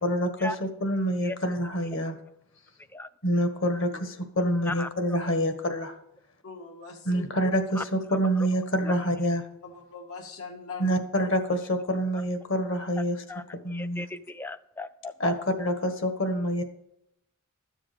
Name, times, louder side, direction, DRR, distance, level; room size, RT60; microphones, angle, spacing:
voice 1, 0.0-2.2 3.2-3.9 4.4-6.0 7.0-9.5 10.8-13.2 13.6-14.1 15.2-16.6, equal, 60° left, 7 dB, 1.5 m, -26 dB
voice 2, 6.4-7.3 8.8-8.9 9.6-11.3, left 4 dB, 90° left, 0 dB, 2.2 m, -42 dB
voice 3, 13.7-15.3, left 2 dB, 10° left, 13 dB, 0.4 m, -36 dB
13.5 x 7.3 x 5.1 m, 0.80 s
head